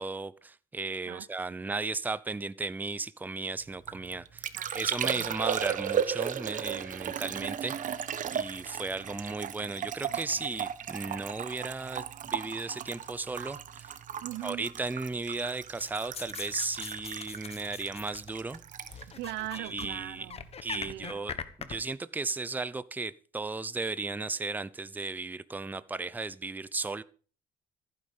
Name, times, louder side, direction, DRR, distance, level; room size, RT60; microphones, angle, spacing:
voice 1, 0.0-4.5 4.7-13.9 14.4-18.6 19.5-20.3 20.6-27.0, right 3 dB, 10° right, 0.6 m, -35 dB
Liquid, 3.6-20.3 20.5-21.1, right 9 dB, 50° right, 1.2 m, -36 dB
voice 2, 4.5-5.3 14.2-14.7 19.1-21.2, right 16 dB, 85° right, 1.0 m, -41 dB
sound 1, 15.8-18.6 18.9-19.9 20.2-21.8, left 6 dB, 35° left, 1.4 m, -41 dB
15.0 x 9.6 x 5.4 m
cardioid pair, 110°, 17 cm